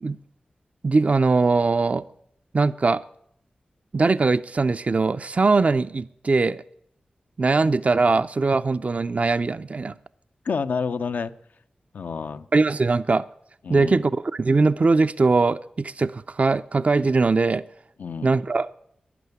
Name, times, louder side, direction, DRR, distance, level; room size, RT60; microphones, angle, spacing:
voice 1, 0.8-2.0 2.5-3.0 3.9-6.6 7.4-9.9 12.5-13.2 13.7-17.6 18.2-18.7, right 3 dB, 50° right, 0.5 m, -21 dB
voice 2, 10.4-11.3 11.9-12.5 13.6-14.0 18.0-18.3, left 5 dB, 85° left, 0.6 m, -29 dB
12.0 x 11.0 x 9.5 m
cardioid pair, 40°, 3 cm